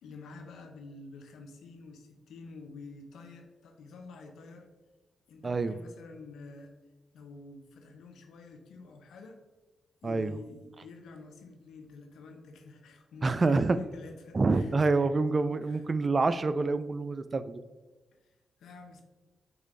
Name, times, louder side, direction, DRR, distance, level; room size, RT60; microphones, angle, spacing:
voice 1, 0.0-4.7 5.3-6.7 7.1-9.4 10.0-14.8 15.6-15.8 18.1-18.3 18.6-19.0, left 3 dB, 75° left, 4 dB, 0.6 m, -48 dB
voice 2, 5.4-5.8 10.0-10.3 13.2-13.8 14.3-17.6, right 3 dB, 45° right, 12 dB, 0.3 m, -27 dB
6.0 x 2.5 x 3.2 m, 1.2 s
hypercardioid pair, 40°, 0 cm